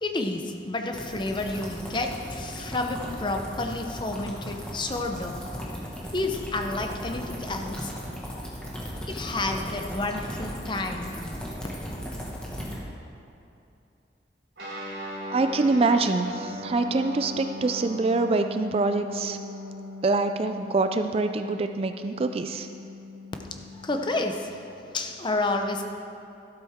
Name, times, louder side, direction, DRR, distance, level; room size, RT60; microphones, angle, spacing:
voice 1, 0.0-5.4 6.1-7.9 9.1-11.1 23.7-24.5 24.9-25.8, left 2 dB, 25° left, 4 dB, 0.7 m, -30 dB
sound 1, 0.9-12.7, equal, 5° left, 1.6 m, -36 dB
Guitar, 14.6-24.5, left 1 dB, 65° right, 2.8 m, -39 dB
voice 2, 15.3-19.4 20.0-22.7, right 3 dB, 30° right, 8 dB, 0.3 m, -25 dB
12.0 x 12.0 x 3.6 m, 2.7 s
head